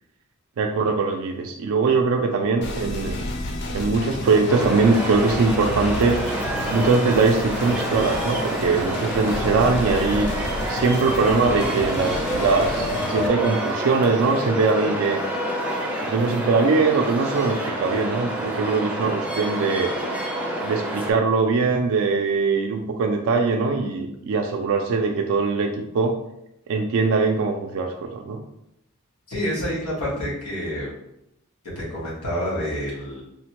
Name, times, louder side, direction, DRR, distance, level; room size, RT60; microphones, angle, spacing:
voice 1, 0.6-3.1 3.7-6.2 6.7-10.3 10.7-15.2 16.0-19.9 20.6-26.1 26.7-28.4, right 4 dB, 65° right, 3 dB, 0.3 m, -21 dB
sound 1, 2.6-13.3, left 1 dB, 50° left, 0.4 m, -31 dB
sound 2, 4.5-21.1, right 1 dB, 5° right, 0.5 m, -28 dB
voice 2, 29.3-30.9 31.7-33.2, equal, 90° left, -5 dB, 1.2 m, -28 dB
3.3 x 2.1 x 2.9 m, 0.81 s
head